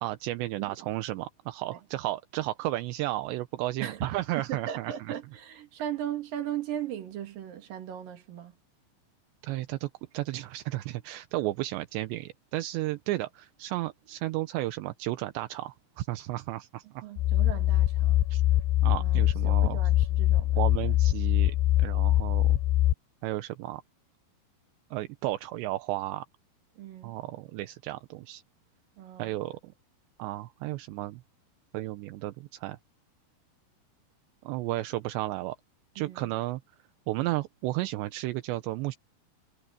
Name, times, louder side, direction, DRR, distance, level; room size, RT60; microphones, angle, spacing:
voice 1, 0.0-4.9 9.4-17.0 18.3-18.4 18.8-19.8 20.6-22.6 23.2-23.8 24.9-26.3 27.0-28.4 29.2-29.7 30.2-31.2 31.7-32.8 34.4-35.6 36.0-36.6 37.1-39.0, right 17 dB, 80° right, 2.9 m, -33 dB
voice 2, 0.6-0.9 3.8-4.1 4.5-8.6 17.0-18.2 19.0-20.6 26.8-27.2 29.0-29.4 36.0-36.3, right 10 dB, 55° right, 3.6 m, -38 dB
sound 1, 17.2-22.9, left 14 dB, 80° left, 2.3 m, -23 dB
omnidirectional pair, 5.2 m